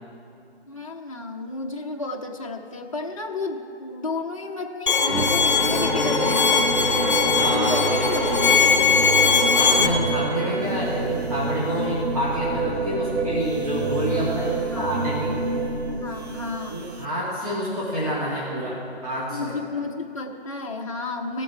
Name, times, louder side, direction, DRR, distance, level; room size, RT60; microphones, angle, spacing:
voice 1, 0.7-7.2 7.5-9.0 14.5-15.1 15.9-16.8 19.3-21.4, left 3 dB, 30° left, 1 dB, 0.8 m, -32 dB
Bowed string instrument, 4.9-9.9, left 5 dB, 45° left, 1.0 m, -20 dB
sound 1, 5.1-17.1, right 3 dB, 75° right, 1.0 m, -27 dB
voice 2, 7.3-7.9 9.6-15.4 16.7-19.5, equal, 35° right, -7 dB, 2.0 m, -28 dB
17.0 x 7.8 x 4.7 m, 2.5 s
figure-of-eight pair, 165°, 33 cm